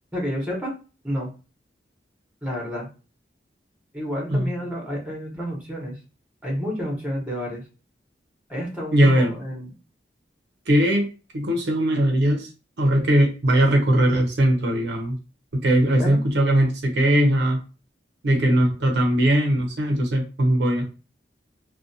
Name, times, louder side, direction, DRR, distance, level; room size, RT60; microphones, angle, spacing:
voice 1, 0.1-0.7 1.0-1.3 2.4-2.9 3.9-6.0 6.4-7.6 8.5-9.7 16.0-16.2, equal, 5° right, -1 dB, 0.9 m, -30 dB
voice 2, 8.9-9.3 10.7-11.1 11.3-12.5 12.8-15.2 15.5-17.6 18.2-20.8, right 1 dB, 70° right, 3 dB, 0.5 m, -20 dB
2.3 x 2.2 x 2.6 m, 0.33 s
head